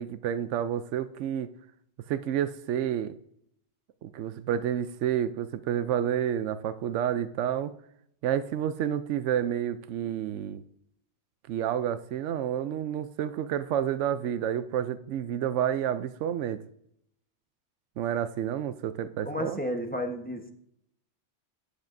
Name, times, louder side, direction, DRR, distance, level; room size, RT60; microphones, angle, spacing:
voice 1, 0.0-1.5 2.1-3.1 4.0-7.7 8.2-10.6 11.5-16.6 18.0-19.6, right 10 dB, 85° right, 12 dB, 0.9 m, -29 dB
voice 2, 19.3-20.5, left 1 dB, 10° left, 3 dB, 1.0 m, -32 dB
13.0 x 10.0 x 2.6 m, 0.72 s
omnidirectional pair, 1.2 m